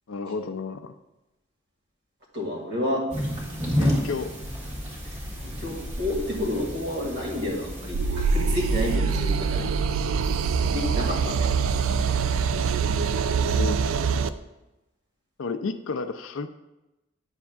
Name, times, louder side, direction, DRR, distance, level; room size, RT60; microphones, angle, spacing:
voice 1, 0.1-0.9 3.8-4.4 13.5-13.8 15.4-16.5, left 4 dB, 70° left, 9 dB, 0.5 m, -31 dB
voice 2, 2.3-3.0 5.4-9.7 10.7-11.6, left 1 dB, 55° right, -1 dB, 2.1 m, -30 dB
sound 1, 3.1-9.0, equal, 35° right, 1.8 m, -31 dB
sound 2, 7.9-14.3, right 5 dB, 75° right, 0.4 m, -24 dB
9.8 x 7.0 x 2.4 m, 0.99 s
head